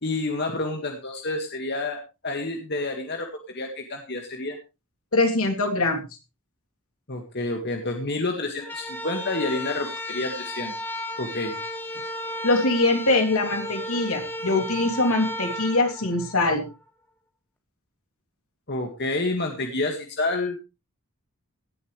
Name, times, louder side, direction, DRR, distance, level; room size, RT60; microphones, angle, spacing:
voice 1, 0.0-4.6 7.1-10.7 11.2-11.6 18.7-20.6, left 2 dB, 50° left, 3 dB, 1.9 m, -29 dB
voice 2, 5.1-6.1 12.4-16.6, left 2 dB, 70° left, 3 dB, 3.1 m, -23 dB
sound 1, 8.6-16.7, equal, 10° left, 2.1 m, -34 dB
17.5 x 11.0 x 3.3 m, 0.28 s
head